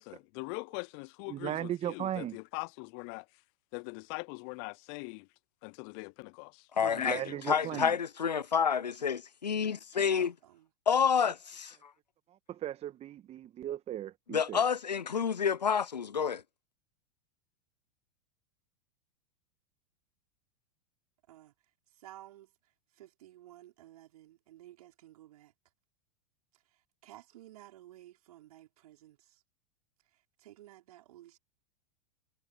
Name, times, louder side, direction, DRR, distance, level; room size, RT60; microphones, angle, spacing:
voice 1, 0.0-3.2 3.7-5.2 5.6-6.5 6.8-7.1 7.7-7.8, left 39 dB, 40° left, 0.4 m, -42 dB
voice 2, 1.3-2.4 7.0-7.9 12.5-14.6, right 12 dB, 30° right, 1.6 m, -37 dB
voice 3, 6.7-10.3 10.9-11.9 14.3-16.4, left 7 dB, 85° left, 0.7 m, -29 dB
voice 4, 9.9-10.7 21.3-21.5 21.9-25.5 26.5-29.4 30.1-31.4, right 14 dB, 65° right, 5.4 m, -54 dB
figure-of-eight pair, 95°, 21 cm